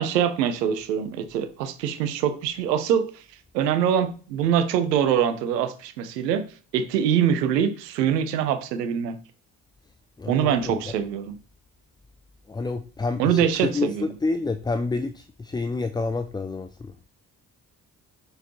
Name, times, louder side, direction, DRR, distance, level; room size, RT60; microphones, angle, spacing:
voice 1, 0.0-3.2 3.5-6.4 6.7-9.2 10.3-11.4 13.2-14.0, right 8 dB, 80° right, 9 dB, 0.8 m, -24 dB
voice 2, 10.2-10.9 12.5-16.9, left 3 dB, 10° left, 10 dB, 0.4 m, -29 dB
6.5 x 4.8 x 3.1 m, 0.38 s
figure-of-eight pair, 40°, 48 cm